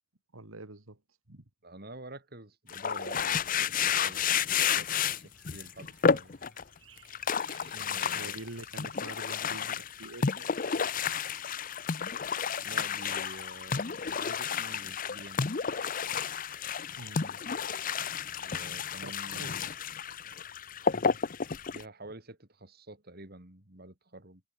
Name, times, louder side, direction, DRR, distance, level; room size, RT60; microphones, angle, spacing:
voice 1, 0.3-1.0 1.3-1.4 7.7-10.6 17.0-17.4 19.0-19.6, right 2 dB, 85° right, 2.2 m, -46 dB
voice 2, 1.6-4.3 4.6-6.4 7.7-8.4 12.6-15.5 18.4-19.7 21.7-24.4, right 2 dB, 45° right, 3.3 m, -48 dB
sound 1, 2.7-6.6 7.0-21.8, left 6 dB, 40° left, 0.7 m, -31 dB
sound 2, 4.0-9.4, right 10 dB, 65° right, 5.0 m, -60 dB
head